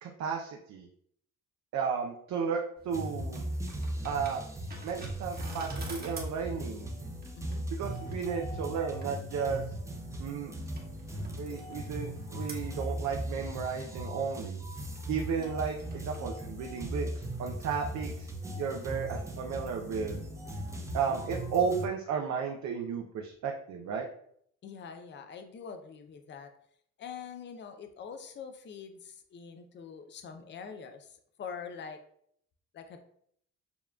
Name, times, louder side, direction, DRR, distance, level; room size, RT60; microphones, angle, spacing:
voice 1, 0.0-0.9 1.7-3.4 4.0-4.4 4.8-6.9 7.8-9.7 10.2-10.5 11.4-14.6 15.1-18.3 18.6-20.2 20.9-24.1, right 6 dB, 60° right, 1 dB, 0.6 m, -33 dB
sound 1, 2.8-18.5, right 2 dB, 30° right, 1.1 m, -51 dB
sound 2, 2.9-21.9, right 1 dB, 10° right, 0.5 m, -38 dB
voice 2, 24.6-26.5 27.0-32.0 32.7-33.0, left 6 dB, 35° left, 6 dB, 0.5 m, -44 dB
6.9 x 2.3 x 2.3 m, 0.66 s
cardioid pair, 105°, 32 cm